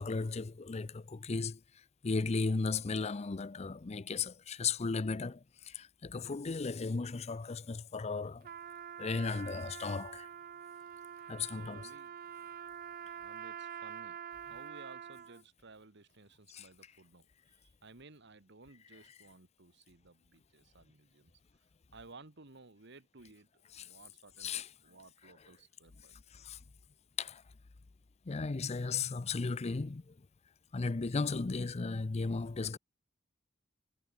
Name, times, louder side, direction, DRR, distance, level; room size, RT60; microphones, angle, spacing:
voice 1, 0.0-1.6 2.0-8.5 9.0-10.3 11.3-11.9 16.5-16.7 23.7-23.9 24.4-24.7 26.3-26.6 27.2-27.4 28.3-30.1 30.7-32.8, left 4 dB, 30° left, 0.5 m, -35 dB
Trumpet, 8.4-15.4, right 8 dB, 45° right, 0.5 m, -46 dB
voice 2, 11.5-12.5 13.2-21.3 21.9-23.5 23.8-26.2, right 3 dB, 60° right, 1.8 m, -57 dB
head